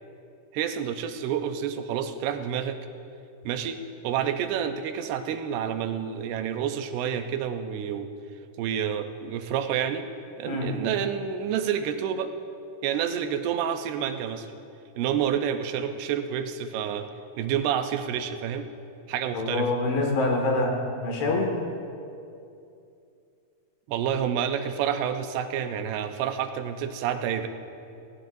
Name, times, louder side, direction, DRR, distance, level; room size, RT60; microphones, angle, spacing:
voice 1, 0.5-2.9 3.5-3.8 4.0-8.1 8.6-10.0 10.4-12.3 12.8-14.5 15.0-17.1 17.4-18.7 19.1-19.7 23.9-27.5, right 8 dB, 85° right, 7 dB, 2.8 m, -29 dB
voice 2, 19.3-21.5, left 2 dB, 80° left, 0 dB, 4.0 m, -25 dB
19.5 x 18.0 x 2.7 m, 2.6 s
omnidirectional pair, 4.5 m